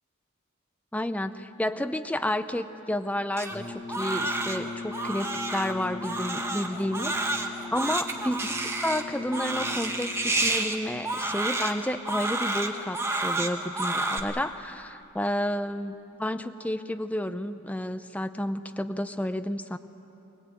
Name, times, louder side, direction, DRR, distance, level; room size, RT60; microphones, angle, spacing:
voice 1, 0.9-19.8, left 1 dB, 5° left, 9 dB, 0.6 m, -31 dB
Crying sobbing, 3.4-14.2, right 2 dB, 10° right, 1.3 m, -30 dB
Brass instrument, 3.5-10.6, left 4 dB, 25° left, 2.2 m, -40 dB
23.0 x 20.5 x 9.0 m, 2.9 s
head